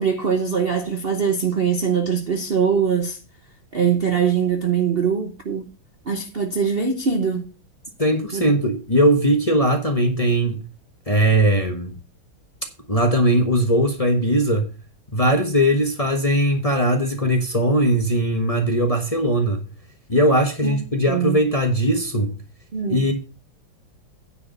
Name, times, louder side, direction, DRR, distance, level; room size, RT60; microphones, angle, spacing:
voice 1, 0.0-3.2 3.7-5.7 6.0-7.5 8.3-8.5 20.6-20.7 21.1-21.4 22.7-23.0, right 6 dB, 40° right, 0.8 m, -22 dB
voice 2, 8.0-10.7 11.1-11.9 12.9-14.7 15.1-19.6 20.1-22.3 22.9-23.1, right 1 dB, 20° left, 1.1 m, -19 dB
9.9 x 4.8 x 6.7 m
omnidirectional pair, 2.1 m